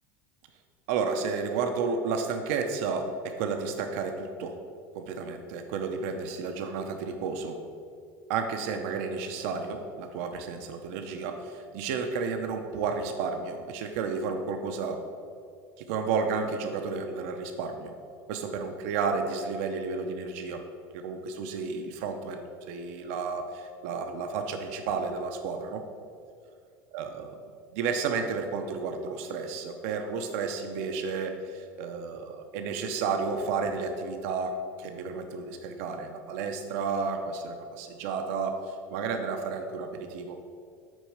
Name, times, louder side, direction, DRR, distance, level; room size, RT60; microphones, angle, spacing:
voice 1, 0.9-4.6 4.9-7.6 8.3-15.0 15.8-17.9 18.3-20.6 20.9-25.8 26.9-27.3 27.7-40.4, right 5 dB, 70° right, 5 dB, 0.7 m, -32 dB
6.2 x 4.5 x 6.4 m, 2.3 s
cardioid pair, 155°, 8 cm